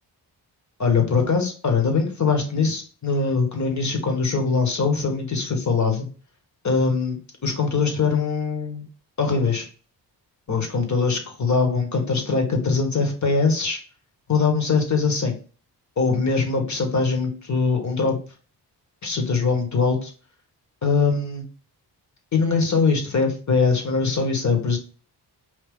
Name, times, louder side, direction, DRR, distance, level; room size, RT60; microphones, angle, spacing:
voice 1, 0.8-6.1 6.6-8.9 9.2-9.7 10.5-13.8 14.3-15.3 16.0-18.2 19.0-20.1 20.8-21.5 22.3-24.8, left 4 dB, 40° left, 3 dB, 1.5 m, -22 dB
4.8 x 2.7 x 3.8 m, 0.38 s
cardioid pair, 90°, 42 cm